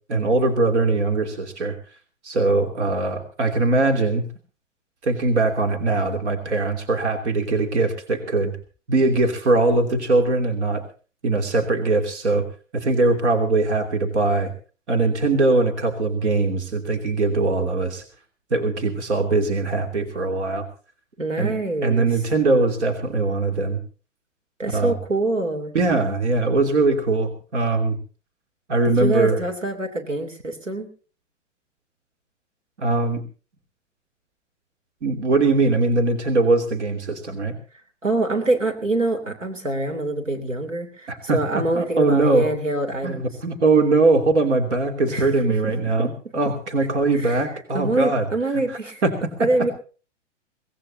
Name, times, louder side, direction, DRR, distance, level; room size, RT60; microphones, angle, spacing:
voice 1, 0.1-1.7 2.2-4.2 5.0-8.5 8.9-10.8 11.2-12.4 12.7-14.5 14.9-18.0 18.5-20.6 21.4-21.5 21.8-23.8 24.7-25.0 25.7-28.0 28.7-29.4 32.8-33.2 35.0-37.6 41.1-42.5 43.0-48.3 49.0-49.1 49.4-49.5, right 3 dB, 65° right, 5 dB, 3.1 m, -21 dB
voice 2, 21.2-22.1 24.6-25.7 28.8-30.9 38.0-43.3 45.1-45.3 45.6-45.7 46.0-46.1 47.1-47.4 47.7-49.0 49.4-49.7, right 2 dB, 80° right, 5 dB, 3.4 m, -25 dB
23.0 x 19.0 x 2.8 m, 0.37 s
figure-of-eight pair, 115°, 37 cm